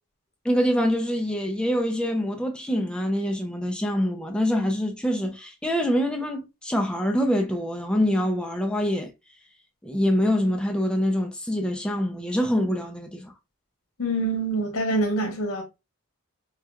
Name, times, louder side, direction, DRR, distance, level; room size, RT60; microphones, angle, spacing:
voice 1, 0.4-9.1 9.8-13.3, equal, 5° left, 0.3 m, -25 dB
voice 2, 14.0-15.6, right 2 dB, 85° left, 1.1 m, -25 dB
4.4 x 2.3 x 2.2 m
head